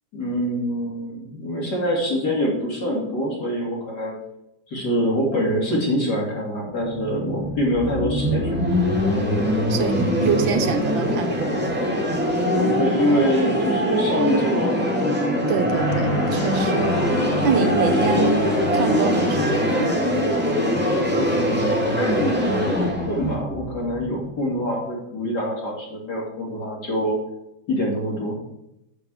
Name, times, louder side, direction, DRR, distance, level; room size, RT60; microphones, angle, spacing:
voice 1, 0.1-4.2 4.7-8.7 12.5-14.9 17.8-18.3 21.1-27.2 27.7-28.4, equal, 55° left, -3 dB, 3.3 m, -25 dB
sound 1, 6.8-24.6, equal, 5° right, 1.9 m, -23 dB
voice 2, 9.7-11.6 15.5-16.9 17.4-18.4 18.7-20.0, right 5 dB, 85° right, 8 dB, 1.7 m, -25 dB
sound 2, 15.7-21.0, left 2 dB, 75° left, 2.3 m, -30 dB
7.3 x 7.0 x 4.9 m, 0.84 s
omnidirectional pair, 2.1 m